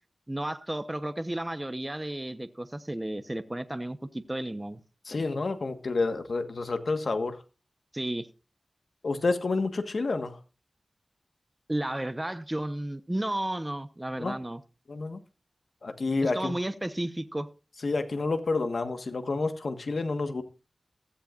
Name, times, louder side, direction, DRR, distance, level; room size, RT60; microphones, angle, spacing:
voice 1, 0.3-4.8 7.9-8.3 11.7-14.6 16.2-17.5, right 1 dB, 20° right, 0.9 m, -33 dB
voice 2, 5.0-7.4 9.0-10.4 14.2-14.3 14.9-15.2 15.8-16.6 17.8-20.4, left 3 dB, 75° left, 1.4 m, -29 dB
15.5 x 13.5 x 2.5 m
wide cardioid pair, 85°, 0 cm